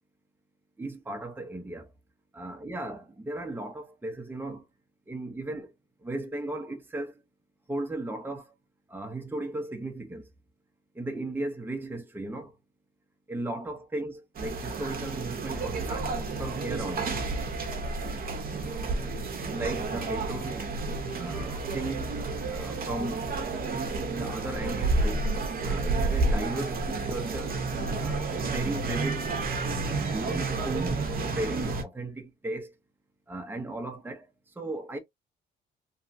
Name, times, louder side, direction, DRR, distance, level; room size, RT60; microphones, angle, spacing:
voice 1, 0.8-1.9 2.3-4.6 5.1-5.7 6.0-7.1 7.7-8.5 8.9-10.2 10.9-12.5 13.3-17.2 19.5-20.6 21.2-22.1 22.5-23.2 24.1-25.2 25.6-27.6 28.0-29.3 29.6-32.7 33.3-34.3 34.6-35.0, right 2 dB, 10° right, 0.7 m, -36 dB
sound 1, 14.3-31.8, right 3 dB, 50° right, 0.8 m, -30 dB
3.0 x 2.3 x 2.6 m
cardioid pair, 90°, 20 cm